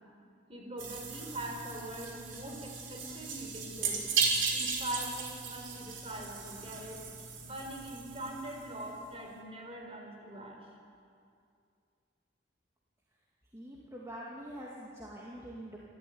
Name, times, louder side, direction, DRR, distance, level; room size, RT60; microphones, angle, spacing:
voice 1, 0.5-4.0 4.5-7.0 7.4-10.6, right 1 dB, 30° right, 1 dB, 4.7 m, -42 dB
sound 1, 0.8-8.9, right 5 dB, 90° right, 4.0 m, -36 dB
voice 2, 13.5-15.8, equal, 15° right, -5 dB, 2.4 m, -45 dB
26.5 x 13.5 x 9.5 m, 2.4 s
head